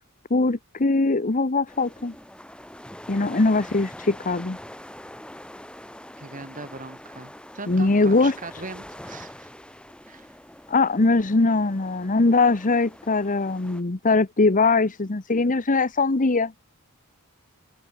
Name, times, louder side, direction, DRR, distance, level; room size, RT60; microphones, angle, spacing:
voice 1, 0.3-2.1 3.1-4.6 7.7-8.6 10.7-16.5, left 3 dB, 35° left, 1.0 m, -21 dB
sound 1, 1.7-13.8, left 1 dB, 5° left, 3.8 m, -44 dB
voice 2, 6.2-9.5 10.1-10.3, right 3 dB, 40° right, 7.0 m, -40 dB
open air
head